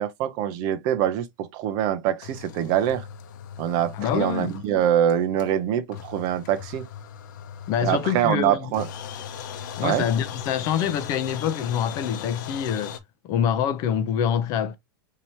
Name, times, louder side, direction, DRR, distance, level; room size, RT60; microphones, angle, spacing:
voice 1, 0.0-3.1 3.6-6.9 7.8-8.9 9.8-10.1, right 10 dB, 35° right, 0.5 m, -24 dB
sound 1, 2.2-4.8 5.1-5.2 5.4-5.5 5.9-8.5 8.7-13.0, left 8 dB, 70° left, 0.7 m, -38 dB
voice 2, 3.9-4.5 7.7-8.7 9.8-13.0 13.2-14.8, left 9 dB, 30° left, 0.5 m, -25 dB
4.4 x 2.8 x 2.9 m
supercardioid pair, 165°, 11 cm